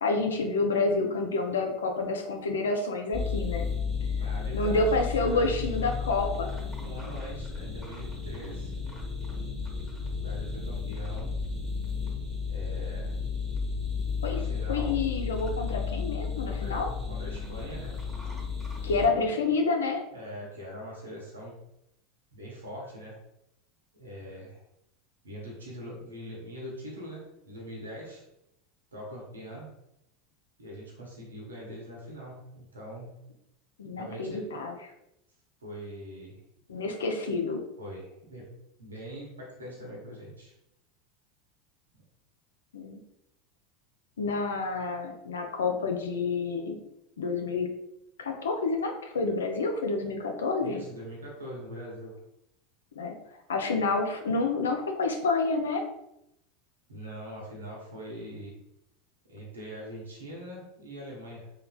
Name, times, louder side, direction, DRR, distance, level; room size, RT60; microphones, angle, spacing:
voice 1, 0.0-3.7 4.5-6.5 14.2-14.4 14.7-16.9 18.8-20.0 33.8-34.7 36.7-37.6 42.7-43.0 44.2-46.8 47.2-47.7 48.2-50.8 53.0-53.2 53.5-55.8, left 3 dB, 80° left, 3 dB, 0.4 m, -28 dB
sound 1, 3.1-19.1, left 5 dB, ahead, 1.0 m, -33 dB
voice 2, 4.1-5.5 6.8-8.7 10.1-11.4 12.5-13.2 14.2-15.0 16.4-16.8 17.1-18.0 18.8-19.4 20.1-21.6 22.3-23.2 23.9-24.6 25.2-28.2 28.9-29.7 30.6-33.2 34.0-34.5 35.6-36.4 37.8-38.5 38.8-40.5 44.7-44.8 50.6-52.2 56.9-58.6 59.2-61.5, equal, 85° right, -3 dB, 0.8 m, -42 dB
3.2 x 2.1 x 2.2 m, 0.83 s
hypercardioid pair, 80°, 0 cm